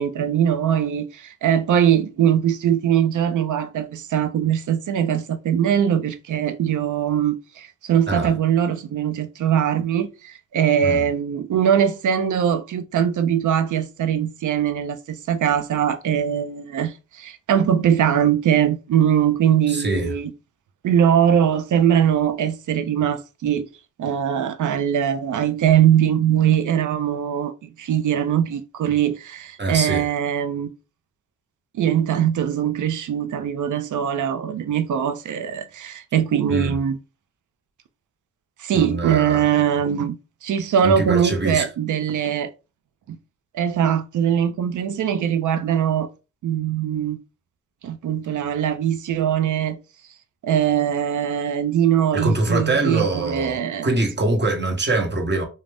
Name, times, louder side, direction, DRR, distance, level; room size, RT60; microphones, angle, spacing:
voice 1, 0.0-20.3 20.8-23.7 24.0-30.7 31.7-37.0 38.6-40.2 40.4-42.5 43.1-43.2 43.5-46.1 46.4-47.2 47.8-49.8 50.4-53.9, right 9 dB, 70° right, 0.5 m, -21 dB
voice 2, 19.7-20.1 29.6-30.1 36.5-36.8 38.7-39.4 40.8-41.7 52.1-55.5, right 2 dB, 35° right, 1.0 m, -23 dB
2.5 x 2.2 x 3.3 m
cardioid pair, 55°, 32 cm